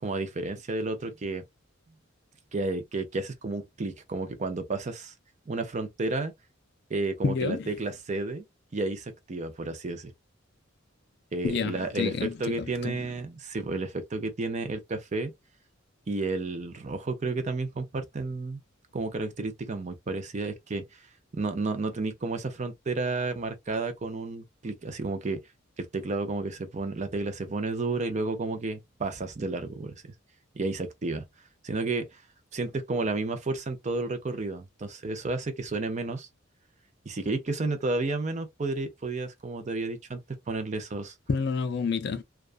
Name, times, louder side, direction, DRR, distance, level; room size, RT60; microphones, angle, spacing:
voice 1, 0.0-1.4 2.5-5.1 5.5-6.3 6.9-8.4 8.7-10.1 11.3-15.3 16.1-18.6 18.9-21.0 21.3-25.4 25.8-30.1 30.5-31.2 31.6-32.2 32.5-36.3 37.1-40.2 40.5-41.1, right 3 dB, 35° right, 0.5 m, -31 dB
voice 2, 7.2-7.7 11.4-13.0 41.3-42.2, left 5 dB, 55° left, 0.4 m, -29 dB
2.3 x 2.3 x 2.4 m
head